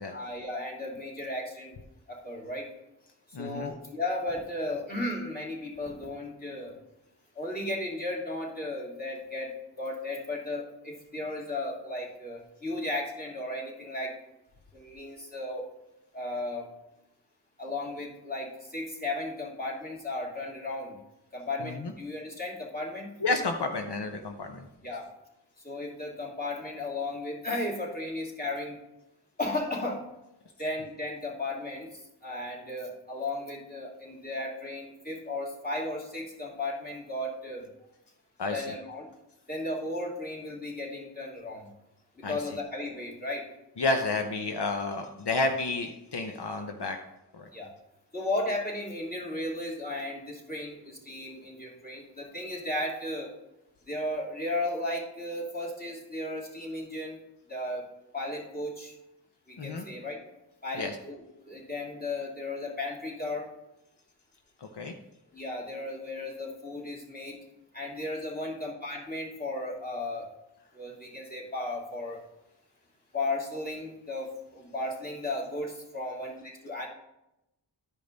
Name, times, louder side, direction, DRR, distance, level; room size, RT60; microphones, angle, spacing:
voice 1, 0.1-1.8 2.1-2.7 3.4-6.8 7.4-14.1 14.7-15.7 16.1-16.7 17.6-21.0 21.3-23.1 24.8-25.1 25.6-28.7 29.4-30.0 30.6-31.9 32.2-37.7 38.5-39.1 39.5-41.7 42.2-43.4 47.5-47.7 48.1-53.3 53.9-57.2 57.5-57.9 58.1-58.9 59.5-60.2 60.6-63.5 65.3-67.4 67.7-70.2 70.7-72.2 73.1-76.9, left 2 dB, 20° left, -2 dB, 2.7 m, -35 dB
voice 2, 3.3-3.7 21.6-21.9 23.2-24.7 38.4-38.7 42.2-42.4 43.8-47.0 47.3-47.5 59.6-59.8 60.8-61.0 64.7-64.9, left 3 dB, 80° left, 4 dB, 0.8 m, -30 dB
11.5 x 5.2 x 3.9 m, 0.89 s
wide cardioid pair, 45°, 40 cm